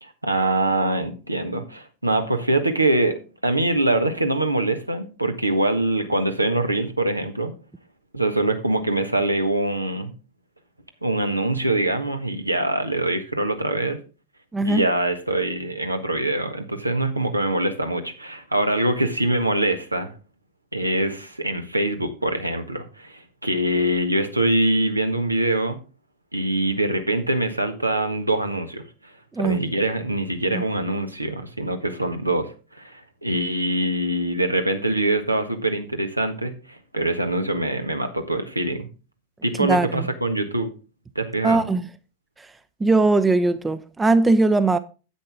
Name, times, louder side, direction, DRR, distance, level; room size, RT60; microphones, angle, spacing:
voice 1, 0.0-3.2 3.4-7.5 8.1-10.1 11.0-14.0 14.6-20.1 20.7-25.8 26.3-28.8 29.4-38.9 39.4-40.7 41.1-41.6, right 1 dB, 85° right, 1.5 m, -24 dB
voice 2, 14.5-14.8 29.4-29.6 30.5-30.6 39.6-40.1 41.4-41.8 42.8-44.8, right 3 dB, 10° right, 0.7 m, -20 dB
10.0 x 8.8 x 3.6 m
figure-of-eight pair, 90°, 0 cm